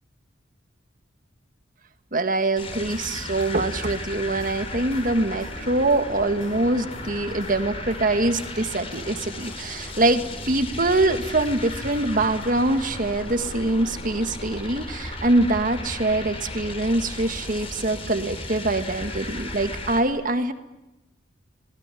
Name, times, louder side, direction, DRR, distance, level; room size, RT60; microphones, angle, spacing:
voice 1, 2.1-20.5, right 2 dB, 45° right, 9 dB, 1.8 m, -24 dB
sound 1, 2.6-20.0, left 2 dB, 30° left, 4.1 m, -35 dB
sound 2, 2.7-12.5, left 1 dB, 85° left, 5.7 m, -47 dB
28.0 x 19.5 x 10.0 m, 0.99 s
head